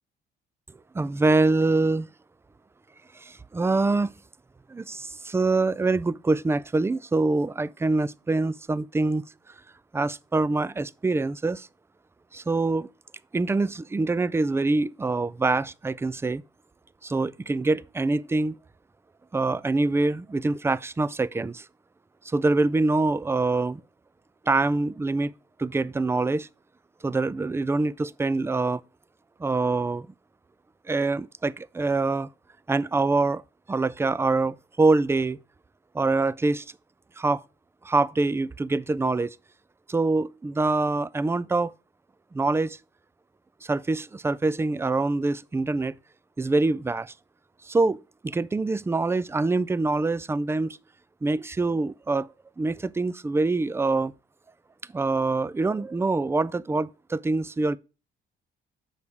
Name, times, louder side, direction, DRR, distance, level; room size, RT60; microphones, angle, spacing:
voice 1, 0.9-2.1 3.1-4.2 4.7-9.3 9.9-11.7 12.3-12.9 13.3-16.4 17.0-18.6 19.3-21.7 22.2-23.8 24.5-25.3 25.6-26.5 27.0-28.8 29.4-30.1 30.9-32.3 32.7-33.4 33.7-35.4 35.9-36.6 37.2-37.4 37.8-39.4 39.9-41.7 42.3-42.8 43.6-46.0 46.4-47.1 47.6-50.8 51.2-52.3 52.6-54.1 54.9-57.8, right 3 dB, 10° right, 0.4 m, -25 dB
6.9 x 5.7 x 4.8 m
cardioid pair, 90°, 20 cm